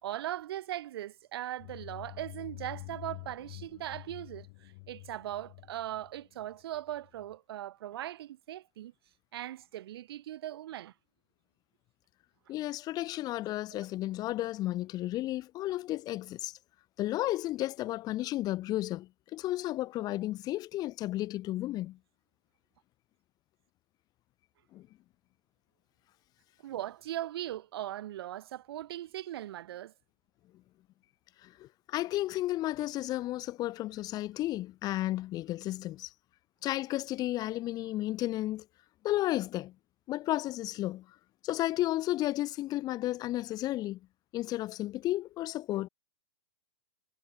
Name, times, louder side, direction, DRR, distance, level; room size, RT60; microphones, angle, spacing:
voice 1, 0.0-8.9 9.3-10.9 13.7-13.8 26.6-29.9, right 13 dB, 60° right, 3.4 m, -39 dB
sound 1, 1.6-7.3, left 26 dB, 45° left, 1.5 m, -48 dB
voice 2, 12.5-16.6 17.0-22.0 24.7-24.9 31.4-36.1 36.6-38.6 39.0-39.7 40.1-41.1 41.4-44.0 44.3-45.9, left 15 dB, 25° left, 0.8 m, -33 dB
hypercardioid pair, 120°, 14 cm